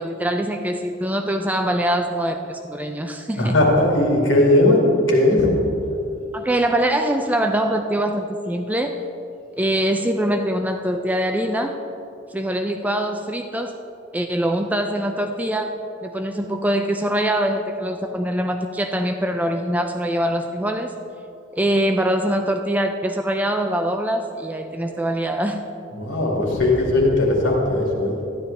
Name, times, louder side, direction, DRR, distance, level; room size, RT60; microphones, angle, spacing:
voice 1, 0.0-3.5 6.3-9.0 9.6-11.8 12.3-13.8 14.1-20.9 21.5-25.6, right 1 dB, 10° right, 5 dB, 0.3 m, -23 dB
voice 2, 3.4-4.8 5.1-5.5 25.9-28.1, left 1 dB, 70° left, -2 dB, 2.2 m, -18 dB
12.5 x 10.5 x 3.3 m, 2.8 s
head